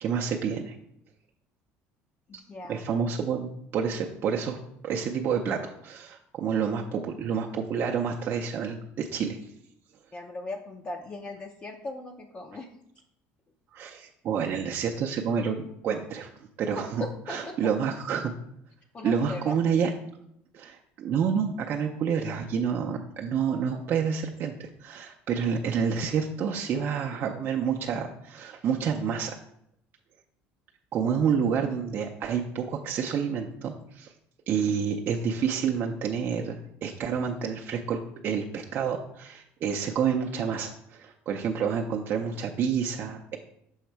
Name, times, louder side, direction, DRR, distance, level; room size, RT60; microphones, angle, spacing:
voice 1, 0.0-0.8 2.7-4.6 4.8-9.4 13.7-17.0 17.3-18.2 19.0-19.9 20.5-29.4 30.9-34.1 34.5-43.4, right 6 dB, 45° right, 0 dB, 0.6 m, -29 dB
voice 2, 2.3-2.8 10.1-12.7 16.7-17.9 18.9-19.6, left 2 dB, 25° left, 3 dB, 0.6 m, -38 dB
6.4 x 4.0 x 4.6 m, 0.75 s
cardioid pair, 130°, 5 cm